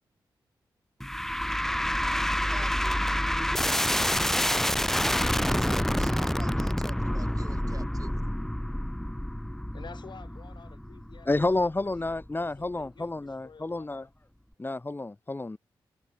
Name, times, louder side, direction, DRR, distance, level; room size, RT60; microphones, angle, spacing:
sound 1, 1.0-12.3, equal, 5° left, 0.5 m, -28 dB
voice 1, 2.4-3.0 3.4-5.1 5.3-8.2, right 4 dB, 45° right, 1.5 m, -46 dB
voice 2, 9.7-11.3 11.6-12.2 12.6-12.7 12.9-14.1, left 5 dB, 60° left, 6.4 m, -50 dB
voice 3, 11.3-14.1 14.6-15.6, left 2 dB, 25° left, 1.0 m, -30 dB
cardioid pair, 50°, 9 cm